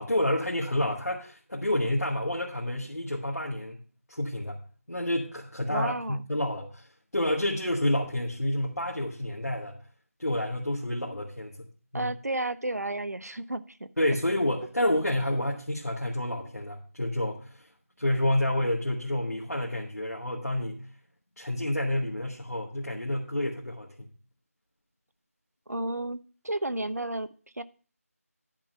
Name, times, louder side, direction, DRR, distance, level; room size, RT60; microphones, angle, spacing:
voice 1, 0.0-3.8 4.1-4.6 4.9-6.9 7.1-9.8 10.2-11.6 11.9-12.1 14.0-17.7 18.0-20.9 21.4-24.1, left 1 dB, 90° left, -3 dB, 1.8 m, -29 dB
voice 2, 5.7-6.2 11.9-13.9 25.7-26.2 26.4-27.3 27.6-27.7, right 2 dB, 80° right, 13 dB, 0.8 m, -32 dB
10.5 x 4.0 x 7.7 m, 0.39 s
figure-of-eight pair, 170°, 8 cm